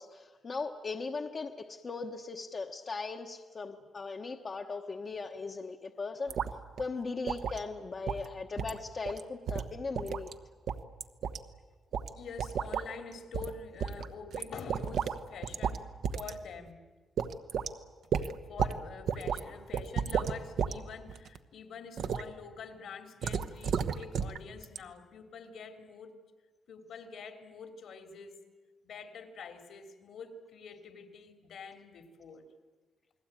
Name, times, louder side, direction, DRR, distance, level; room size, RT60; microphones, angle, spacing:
voice 1, 0.0-6.3 6.8-10.3, left 4 dB, 35° left, 3 dB, 1.2 m, -38 dB
sound 1, 6.3-6.5 6.8-6.9 7.3-7.6 8.1-8.3 8.6-8.8 9.1-9.2 9.5-10.3 10.7-11.4 11.9-12.1 12.4-12.9 13.3-13.5 13.8-15.2 15.4-15.8 16.0-16.3 16.7-16.8 17.2-17.7 18.1-18.8 19.1-19.4 19.7-20.7 21.1-21.4 22.0-22.2 23.2-24.4 24.6-24.8, right 7 dB, 65° right, 1.1 m, -32 dB
voice 2, 12.2-16.8 18.0-26.2 26.7-28.4 28.8-32.4, left 5 dB, 70° left, 6 dB, 3.0 m, -46 dB
29.0 x 20.5 x 9.0 m, 1.3 s
wide cardioid pair, 150°, 0 cm